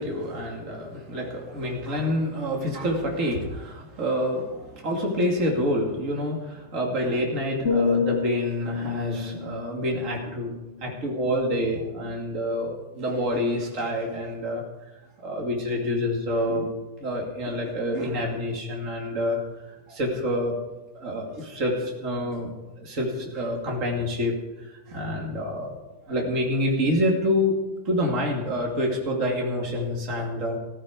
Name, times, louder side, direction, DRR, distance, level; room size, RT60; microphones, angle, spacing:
voice 1, 0.0-14.6 15.2-16.7 17.0-19.4 19.9-20.6 20.9-22.5 22.8-24.3 24.9-25.7 26.1-27.5 27.8-30.6, left 1 dB, 50° right, -1 dB, 2.9 m, -27 dB
sound 1, 7.7-11.6 12.0-12.3, left 6 dB, 50° left, 1.5 m, -30 dB
15.0 x 14.5 x 5.1 m, 1.1 s
omnidirectional pair, 1.8 m